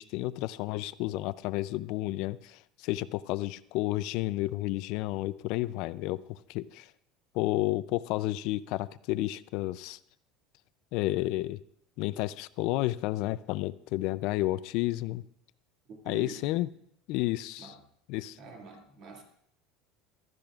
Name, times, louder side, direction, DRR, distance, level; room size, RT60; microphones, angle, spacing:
voice 1, 0.0-6.9 7.3-10.0 10.9-11.6 12.0-15.2 16.1-16.7 17.1-17.7 18.1-18.4, left 17 dB, 55° left, 16 dB, 0.4 m, -31 dB
voice 2, 15.9-16.4 17.6-17.8 18.4-19.2, right 4 dB, 45° right, 2 dB, 2.0 m, -46 dB
15.0 x 12.5 x 2.4 m, 0.70 s
cardioid pair, 170°, 0 cm